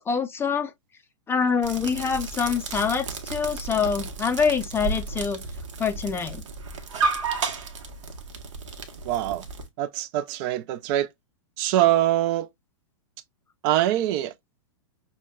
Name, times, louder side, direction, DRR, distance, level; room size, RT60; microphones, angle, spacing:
voice 1, 0.1-0.7 1.3-5.4 5.8-6.4, left 6 dB, 15° left, 0.5 m, -25 dB
sound 1, 1.6-9.7, right 4 dB, 70° right, 1.1 m, -32 dB
voice 2, 9.0-9.4 9.8-11.1 11.6-12.5 13.6-14.3, right 13 dB, 40° right, 0.5 m, -23 dB
6.1 x 2.2 x 2.2 m
hypercardioid pair, 130°, 16 cm